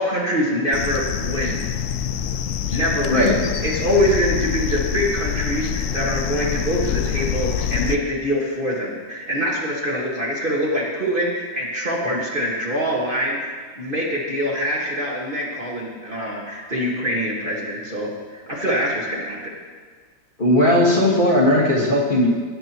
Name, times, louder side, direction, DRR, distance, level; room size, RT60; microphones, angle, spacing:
voice 1, 0.0-1.6 2.7-19.5, equal, 30° right, -5 dB, 1.6 m, -24 dB
sound 1, 0.7-8.0, left 8 dB, 85° left, 0.7 m, -26 dB
voice 2, 20.4-22.3, left 1 dB, 30° left, -5 dB, 1.6 m, -17 dB
17.5 x 8.9 x 3.0 m, 1.6 s
omnidirectional pair, 1.9 m